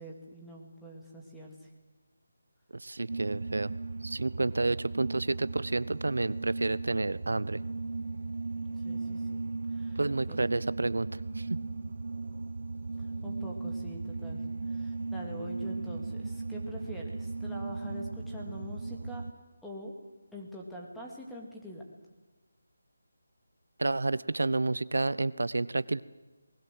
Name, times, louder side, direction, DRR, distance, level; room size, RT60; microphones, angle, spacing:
voice 1, 0.0-1.7 8.7-10.0 10.3-10.4 13.0-14.4 14.7-19.2 19.6-19.9 20.3-21.8, equal, 5° left, -2 dB, 2.5 m, -45 dB
voice 2, 2.7-3.7 4.0-7.6 10.0-11.1 11.4-11.6 23.8-26.0, right 2 dB, 85° right, 18 dB, 0.8 m, -30 dB
sound 1, 3.1-19.3, right 3 dB, 60° right, 1.0 m, -37 dB
27.5 x 20.0 x 7.8 m, 1.2 s
figure-of-eight pair, 170°, 0 cm